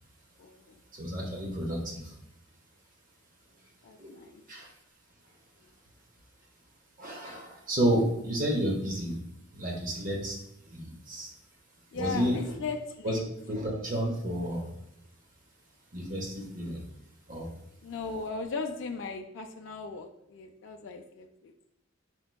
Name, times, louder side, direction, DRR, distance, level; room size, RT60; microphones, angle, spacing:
voice 1, 0.4-0.8 1.2-1.4 3.8-4.4 11.9-13.2 17.8-21.5, left 4 dB, 65° left, 3 dB, 0.4 m, -38 dB
voice 2, 0.9-2.2 4.0-4.1 4.5-4.7 7.0-9.2 9.5-10.4 10.7-11.3 11.9-12.5 13.0-13.2 13.5-14.7 15.9-16.8 17.3-17.5, equal, 45° right, 0 dB, 0.8 m, -31 dB
4.5 x 4.3 x 2.2 m, 0.82 s
head